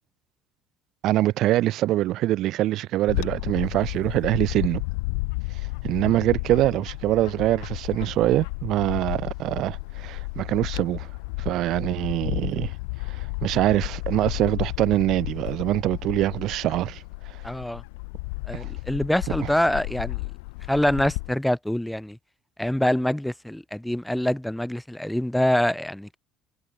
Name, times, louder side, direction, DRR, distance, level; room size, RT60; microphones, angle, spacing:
voice 1, 1.0-4.8 5.8-11.1 11.4-12.7 13.1-17.4 18.5-18.7 19.4-19.5, right 15 dB, 60° right, 0.7 m, -24 dB
Bird / Wind, 3.1-21.3, left 29 dB, 75° left, 0.7 m, -33 dB
voice 2, 17.4-17.8 18.5-20.2 20.7-22.2 22.6-26.2, left 1 dB, 5° left, 1.2 m, -25 dB
hypercardioid pair, 65°, 0 cm